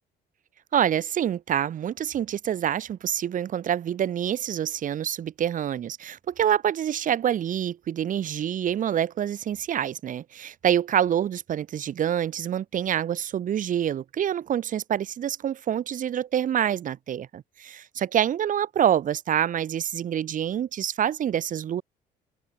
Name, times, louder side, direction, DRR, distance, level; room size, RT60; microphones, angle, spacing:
voice 1, 0.7-21.8, right 10 dB, 50° right, 2.0 m, -26 dB
open air
cardioid pair, 110°, 17 cm